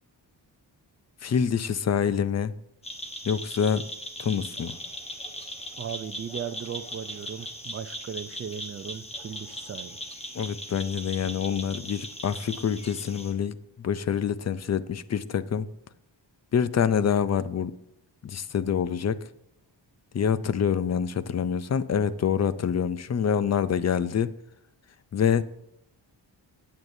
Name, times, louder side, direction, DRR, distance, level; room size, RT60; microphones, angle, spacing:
voice 1, 1.2-2.5 3.3-3.8 4.2-4.7 10.3-15.7 16.5-17.7 18.2-19.2 20.1-24.3 25.1-25.4, left 7 dB, 40° left, 0.4 m, -26 dB
sound 1, 2.8-13.3, equal, 15° left, 1.2 m, -39 dB
voice 2, 5.8-10.0, right 8 dB, 35° right, 0.4 m, -37 dB
14.5 x 9.0 x 2.7 m
wide cardioid pair, 180°, 45 cm